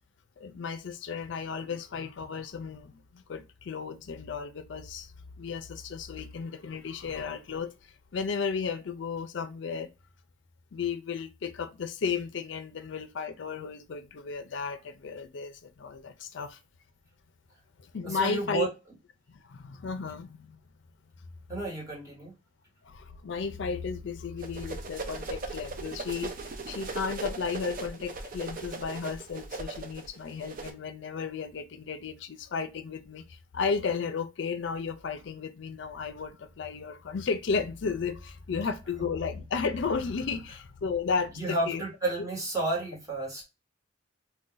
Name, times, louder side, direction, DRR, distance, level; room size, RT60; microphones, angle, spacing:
voice 1, 0.4-5.1 5.4-9.9 10.7-16.6 17.8-18.7 19.3-20.6 22.8-26.3 26.7-41.8, left 5 dB, 65° left, 0.4 m, -34 dB
voice 2, 18.0-18.7 21.5-22.3 41.3-43.4, right 2 dB, 15° right, 1.3 m, -31 dB
sound 1, 24.4-30.7, right 3 dB, 45° right, 0.5 m, -38 dB
2.5 x 2.2 x 3.8 m
head